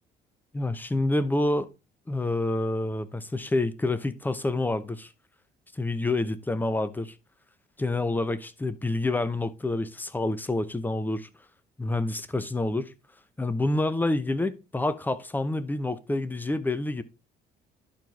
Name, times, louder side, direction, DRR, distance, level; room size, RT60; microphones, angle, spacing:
voice 1, 0.5-1.7 2.1-5.1 5.8-7.1 7.8-11.3 11.8-12.9 13.4-17.0, left 2 dB, 10° left, 0.7 m, -28 dB
11.0 x 4.6 x 3.4 m
cardioid pair, 110°, 17 cm